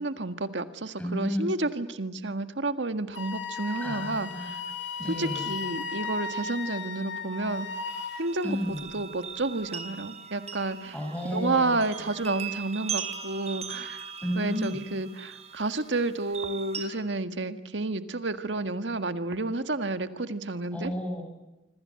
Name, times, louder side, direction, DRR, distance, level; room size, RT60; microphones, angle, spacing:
voice 1, 0.0-4.6 5.2-7.7 8.2-8.6 8.9-10.9 11.3-14.0 14.4-20.9, right 2 dB, 85° right, 9 dB, 1.8 m, -30 dB
voice 2, 1.0-1.5 3.8-4.5 5.0-5.5 8.4-8.8 10.9-11.9 14.2-14.8 20.7-21.2, equal, 10° left, 3 dB, 7.6 m, -32 dB
Wind instrument woodwind instrument, 3.1-8.3, left 4 dB, 80° left, 2.9 m, -35 dB
sound 1, 7.9-16.9, right 7 dB, 40° right, 4.6 m, -40 dB
26.0 x 25.5 x 7.8 m, 0.98 s
head